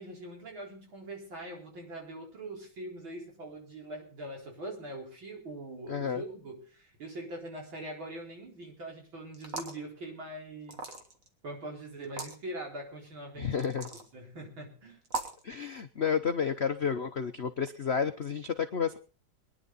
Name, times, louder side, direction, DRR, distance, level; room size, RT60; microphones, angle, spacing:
voice 1, 0.0-10.8 11.4-13.7 14.1-15.0, right 1 dB, 70° right, 0 dB, 5.1 m, -42 dB
voice 2, 5.9-6.2 13.4-13.9 15.4-19.0, left 7 dB, 60° left, 8 dB, 0.6 m, -31 dB
sound 1, 9.3-9.8 10.7-11.3 12.0-12.4 13.6-14.1 15.1-15.4, right 3 dB, 40° right, 2.0 m, -38 dB
23.0 x 10.5 x 4.1 m, 0.39 s
omnidirectional pair, 2.2 m